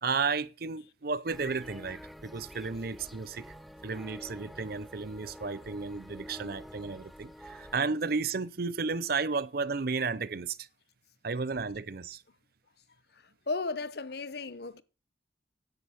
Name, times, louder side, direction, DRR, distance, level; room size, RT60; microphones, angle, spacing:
voice 1, 0.0-3.6 3.8-10.7 11.2-12.2, right 4 dB, 55° right, 0.7 m, -33 dB
sound 1, 1.3-7.8, equal, ahead, 0.5 m, -48 dB
voice 2, 13.5-14.8, left 3 dB, 55° left, 0.8 m, -34 dB
10.5 x 8.1 x 7.1 m
head